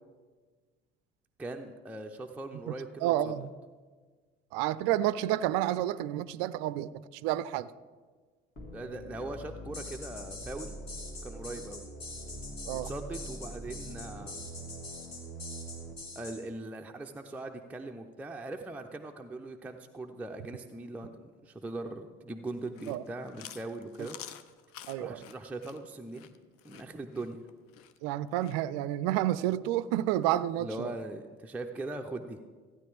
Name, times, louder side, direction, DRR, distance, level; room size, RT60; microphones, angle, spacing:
voice 1, 1.4-3.3 8.7-10.8 11.2-11.8 12.7-14.4 16.2-24.2 25.0-26.3 26.6-27.4 30.6-32.4, right 2 dB, 5° right, 3 dB, 0.6 m, -40 dB
voice 2, 3.0-3.5 4.5-7.7 12.7-12.9 22.9-23.0 24.9-25.2 28.0-30.9, right 13 dB, 50° right, 17 dB, 0.4 m, -30 dB
sound 1, 8.5-15.9, right 1 dB, 30° left, 1.9 m, -44 dB
sound 2, 9.7-16.4, left 3 dB, 75° left, 2.0 m, -44 dB
Chewing mastication, 22.6-28.6, left 11 dB, 50° left, 0.7 m, -49 dB
15.0 x 9.5 x 3.5 m, 1.4 s
figure-of-eight pair, 55°, 31 cm